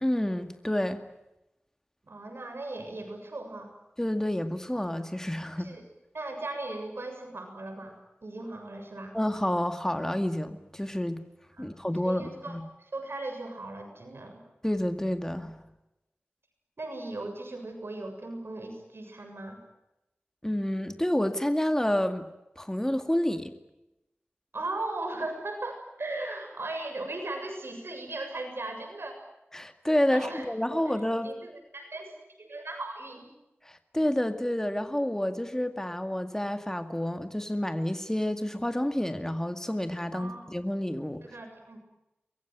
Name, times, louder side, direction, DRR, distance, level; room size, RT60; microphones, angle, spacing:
voice 1, 0.0-1.0 4.0-5.7 9.1-11.2 11.6-12.7 14.6-15.6 20.4-22.3 22.6-23.5 29.5-31.3 33.6-41.2, left 1 dB, 10° left, 8 dB, 2.1 m, -29 dB
voice 2, 2.1-3.7 5.6-5.8 6.1-7.9 8.2-9.1 11.6-11.7 12.0-14.4 16.8-19.6 24.5-29.1 30.1-30.9 31.2-32.1 32.4-33.3 40.1-40.5 41.2-41.8, right 2 dB, 80° right, 5 dB, 7.0 m, -38 dB
24.0 x 22.0 x 9.3 m, 0.91 s
wide cardioid pair, 50°, 4 cm